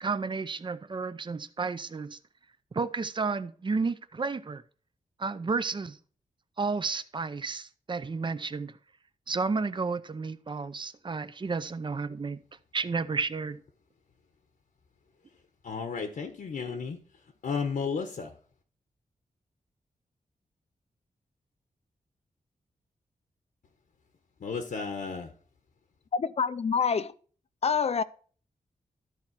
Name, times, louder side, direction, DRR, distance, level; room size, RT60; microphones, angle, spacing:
voice 1, 0.0-2.2 2.7-4.6 5.2-6.0 6.6-8.8 9.3-12.4 12.7-13.6, right 4 dB, 35° right, 0.5 m, -32 dB
voice 2, 15.6-17.0 17.4-18.3 24.4-25.3, left 5 dB, 75° left, 1.1 m, -33 dB
voice 3, 26.1-27.1 27.6-28.0, left 6 dB, 45° left, 0.5 m, -26 dB
13.0 x 4.4 x 5.8 m
wide cardioid pair, 145°, 15 cm